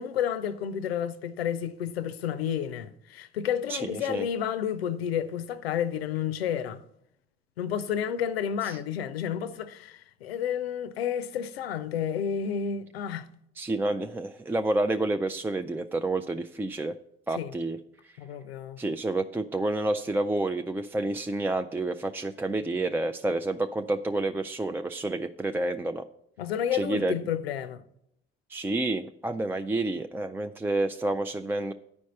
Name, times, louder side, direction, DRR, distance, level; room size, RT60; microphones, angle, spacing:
voice 1, 0.0-6.8 7.6-13.3 17.4-17.5 18.2-18.8 26.4-27.8, left 8 dB, 80° left, 0.5 m, -31 dB
voice 2, 3.7-4.2 8.6-8.8 13.6-17.0 17.3-17.8 18.0-18.2 18.8-26.1 26.7-27.2 28.5-31.7, right 2 dB, 5° right, 0.3 m, -29 dB
9.8 x 5.2 x 6.5 m
figure-of-eight pair, 50°, 30 cm